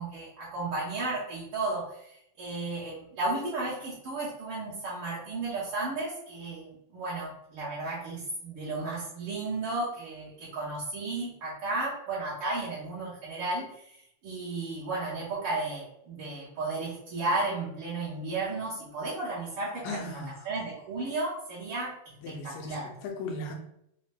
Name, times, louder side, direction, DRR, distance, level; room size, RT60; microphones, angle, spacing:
voice 1, 0.0-14.0 14.2-21.9 22.3-22.9, right 2 dB, 65° right, -8 dB, 1.4 m, -34 dB
voice 2, 19.8-20.3 22.2-23.6, left 2 dB, 90° left, 2 dB, 2.2 m, -37 dB
5.4 x 2.1 x 3.3 m, 0.75 s
omnidirectional pair, 3.6 m